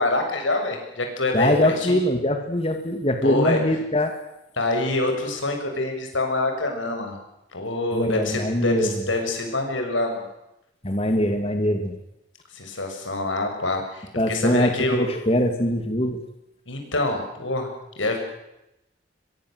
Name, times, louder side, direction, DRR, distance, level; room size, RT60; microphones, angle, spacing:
voice 1, 0.0-2.0 3.2-3.6 4.6-7.2 7.5-10.3 12.5-15.1 16.7-17.7 18.0-18.2, left 2 dB, 90° left, 4 dB, 7.2 m, -26 dB
voice 2, 1.3-4.1 7.9-8.9 10.8-12.0 14.2-16.2, left 1 dB, 30° left, 5 dB, 2.2 m, -22 dB
24.5 x 22.5 x 7.9 m, 0.88 s
head